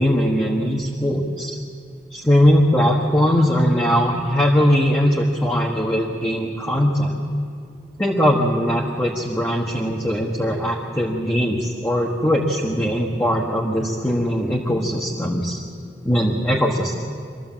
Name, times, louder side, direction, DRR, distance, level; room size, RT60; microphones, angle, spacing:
voice 1, 0.0-1.5 2.1-7.2 8.0-15.6 16.0-16.9, equal, 10° left, -2 dB, 1.4 m, -20 dB
25.0 x 14.0 x 7.5 m, 2.3 s
head